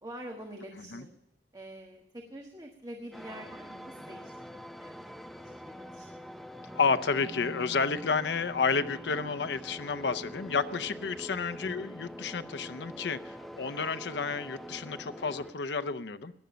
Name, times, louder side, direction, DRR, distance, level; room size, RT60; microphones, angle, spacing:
voice 1, 0.0-1.1 1.5-6.3 11.7-11.9, right 1 dB, 20° right, 1 dB, 1.5 m, -46 dB
sound 1, 3.1-15.5, equal, ahead, 0.5 m, -44 dB
voice 2, 6.7-16.3, left 5 dB, 75° left, 11 dB, 0.7 m, -31 dB
17.5 x 10.5 x 5.1 m, 0.89 s
head